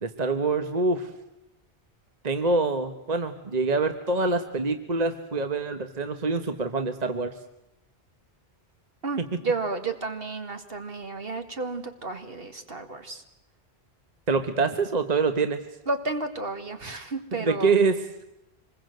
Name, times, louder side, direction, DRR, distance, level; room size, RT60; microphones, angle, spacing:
voice 1, 0.0-1.1 2.2-7.3 9.2-9.3 14.3-15.6 17.3-18.0, right 3 dB, 40° right, 8 dB, 1.3 m, -25 dB
voice 2, 9.0-13.2 15.9-17.7, right 3 dB, 60° right, 7 dB, 2.3 m, -32 dB
26.0 x 21.0 x 7.8 m, 0.89 s
omnidirectional pair, 1.1 m